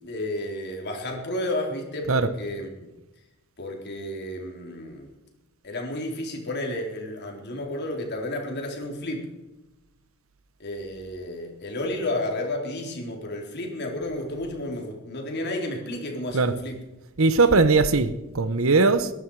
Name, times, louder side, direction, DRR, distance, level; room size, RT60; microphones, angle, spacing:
voice 1, 0.0-2.8 3.6-5.1 5.6-9.3 10.6-16.8, left 1 dB, 55° left, 3.8 m, -32 dB
voice 2, 17.2-19.1, right 3 dB, 80° right, 1.1 m, -20 dB
22.0 x 11.0 x 4.9 m
head